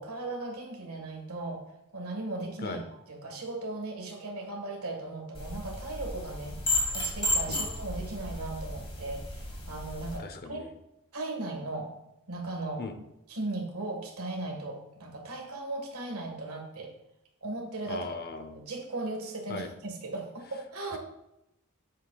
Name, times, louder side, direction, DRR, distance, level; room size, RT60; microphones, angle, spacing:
voice 1, 0.0-1.6 1.9-2.8 3.1-6.6 6.9-10.7 11.1-11.9 12.3-12.8 13.3-16.9 17.4-18.1 18.5-21.0, right 2 dB, 75° right, 1 dB, 1.6 m, -37 dB
sound 1, 5.3-10.2, left 1 dB, 25° left, 1.4 m, -33 dB
voice 2, 10.2-10.7 12.8-12.9 17.9-18.6 19.5-19.7, left 3 dB, 45° left, 8 dB, 0.7 m, -38 dB
8.4 x 7.4 x 2.3 m, 0.86 s
head